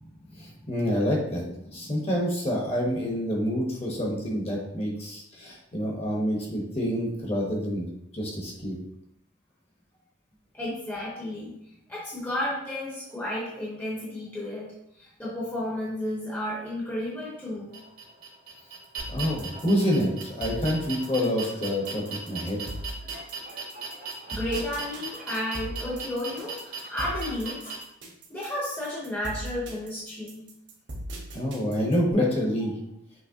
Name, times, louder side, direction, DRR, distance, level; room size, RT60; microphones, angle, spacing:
voice 1, 0.7-1.4 1.7-7.9 8.1-8.7 19.1-22.6 31.3-32.7, equal, 30° left, -1 dB, 1.0 m, -27 dB
voice 2, 10.5-11.5 11.9-14.7 15.0-17.7 24.3-27.7 28.3-30.5, left 1 dB, 10° left, -6 dB, 0.8 m, -32 dB
sound 1, 17.7-27.8, right 4 dB, 45° right, 0.9 m, -38 dB
sound 2, 19.0-32.1, right 1 dB, 70° right, 1.1 m, -39 dB
5.9 x 3.2 x 2.7 m, 0.80 s
head